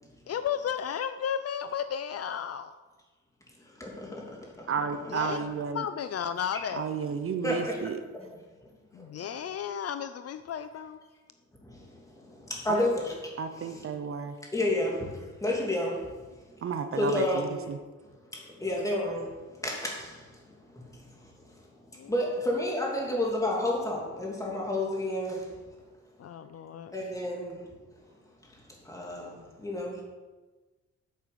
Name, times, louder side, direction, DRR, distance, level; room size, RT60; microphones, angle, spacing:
voice 1, 0.3-2.7 5.1-5.4 5.7-6.9 8.9-11.0 12.7-12.9 22.0-22.1 26.2-26.9, left 8 dB, 55° left, 11 dB, 0.5 m, -34 dB
voice 2, 3.8-4.7 7.4-7.8 9.0-9.1 11.6-13.1 13.6-13.8 14.5-16.5 17.0-17.5 18.3-21.3 22.1-25.6 26.9-27.6 28.4-30.0, left 1 dB, 10° left, -2 dB, 2.9 m, -31 dB
voice 3, 4.7-5.9 6.7-8.0 12.7-12.8 13.4-14.4 16.6-17.8, right 6 dB, 50° right, 8 dB, 0.8 m, -32 dB
9.3 x 8.0 x 6.9 m, 1.2 s
wide cardioid pair, 145°, 29 cm